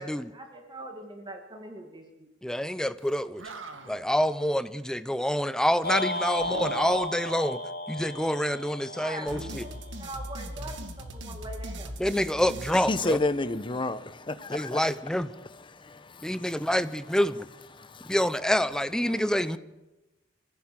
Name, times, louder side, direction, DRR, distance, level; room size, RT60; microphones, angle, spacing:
voice 1, 0.0-2.3 8.6-11.9 19.1-19.2, right 1 dB, 25° right, 1.8 m, -43 dB
voice 2, 2.4-3.4 3.9-7.6 7.9-9.6 12.0-13.2 14.5-15.3 16.2-17.5 18.1-19.6, equal, 5° left, 0.6 m, -27 dB
Animal, 3.0-3.1 3.4-4.2 6.4-7.2 9.2-10.6, right 3 dB, 80° right, 1.9 m, -45 dB
sound 1, 5.8-10.2, left 1 dB, 55° left, 2.5 m, -34 dB
sound 2, 9.3-13.6, equal, 65° right, 1.9 m, -40 dB
voice 3, 12.7-16.8 17.1-17.2 17.7-18.2 19.0-19.6, left 2 dB, 25° left, 0.9 m, -33 dB
24.5 x 15.5 x 7.6 m
head